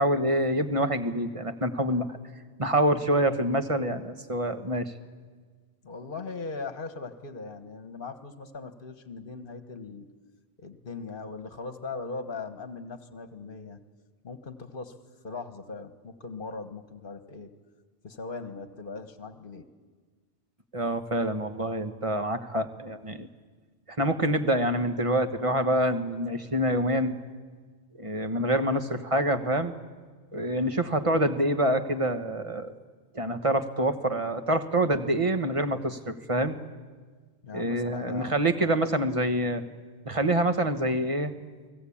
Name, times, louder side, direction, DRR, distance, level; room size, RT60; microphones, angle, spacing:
voice 1, 0.0-2.1 2.6-4.9 20.7-23.3 24.0-27.1 28.0-29.7 30.3-32.7 33.1-36.6 37.5-39.6 40.0-41.3, right 1 dB, 30° right, 7 dB, 1.4 m, -26 dB
voice 2, 5.8-10.1 10.6-13.8 14.2-14.9 15.2-17.5 18.0-19.6 37.4-38.8, left 4 dB, 50° left, 9 dB, 1.6 m, -39 dB
30.0 x 19.0 x 8.7 m, 1.5 s
omnidirectional pair, 1.2 m